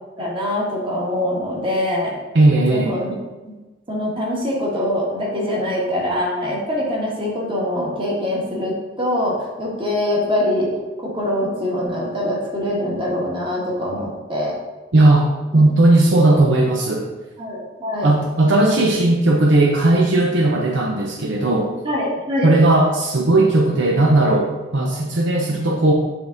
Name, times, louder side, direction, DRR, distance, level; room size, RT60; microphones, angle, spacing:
voice 1, 0.2-2.1 2.7-3.2 3.4-3.5 3.9-10.7 11.0-14.6 15.5-15.6 17.4-18.1 21.8-22.5, left 1 dB, 25° right, -4 dB, 1.6 m, -23 dB
voice 2, 2.3-2.9 14.9-15.3 15.5-17.1 18.0-21.7 22.4-25.9, right 2 dB, 65° right, 0 dB, 0.7 m, -16 dB
8.6 x 3.6 x 3.8 m, 1.2 s
head